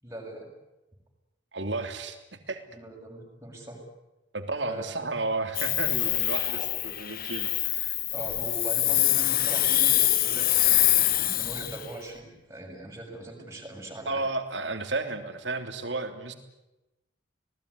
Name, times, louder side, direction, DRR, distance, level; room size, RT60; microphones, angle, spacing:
voice 1, 0.0-0.5 2.7-3.8 4.6-5.0 6.0-6.2 6.5-6.8 8.1-14.2, right 1 dB, 15° right, 0 dB, 6.9 m, -41 dB
voice 2, 1.5-2.6 4.3-7.9 14.1-16.3, right 3 dB, 65° right, 7 dB, 3.3 m, -33 dB
Hiss, 5.5-11.8, left 14 dB, 50° left, 1.2 m, -25 dB
27.0 x 19.0 x 9.8 m, 0.99 s
head